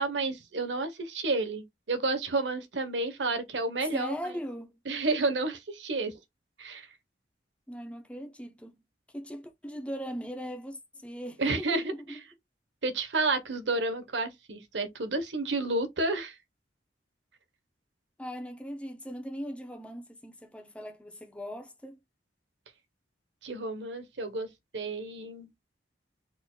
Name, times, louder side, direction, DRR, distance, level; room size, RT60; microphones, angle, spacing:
voice 1, 0.0-4.2 4.9-6.1 6.6-6.9 11.4-12.2 12.8-16.3 23.4-24.5 24.7-25.5, right 3 dB, 85° right, 1.1 m, -30 dB
voice 2, 3.9-4.7 7.7-8.8 9.1-12.2 18.2-22.0, equal, 5° left, 0.7 m, -39 dB
4.3 x 4.1 x 2.3 m
head